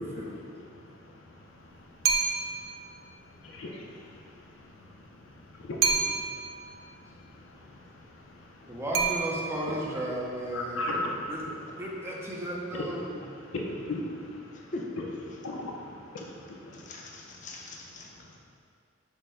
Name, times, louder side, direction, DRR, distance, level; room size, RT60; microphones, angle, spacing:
voice 1, 0.0-8.8 10.5-11.8 12.4-17.5 18.2-18.4, left 1 dB, 85° left, 0 dB, 0.6 m, -40 dB
sound 1, 2.0-2.7 5.8-6.5 8.9-9.7, right 5 dB, 75° right, 0.4 m, -27 dB
voice 2, 8.7-10.8 11.3-11.4 11.8-13.2, right 1 dB, 15° right, -4 dB, 0.5 m, -34 dB
voice 3, 14.5-14.9 16.7-18.1, left 2 dB, 40° left, -1 dB, 0.5 m, -41 dB
6.4 x 2.1 x 3.6 m, 2.3 s
head